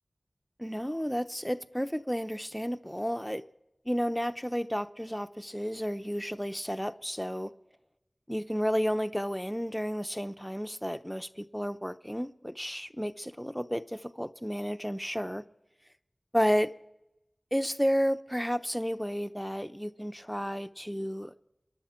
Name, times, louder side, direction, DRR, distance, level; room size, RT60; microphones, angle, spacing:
voice 1, 0.6-3.4 3.9-7.5 8.3-15.4 16.3-16.7 17.5-21.4, equal, 5° left, 0.7 m, -32 dB
27.5 x 11.0 x 4.4 m
wide cardioid pair, 55°, 0 cm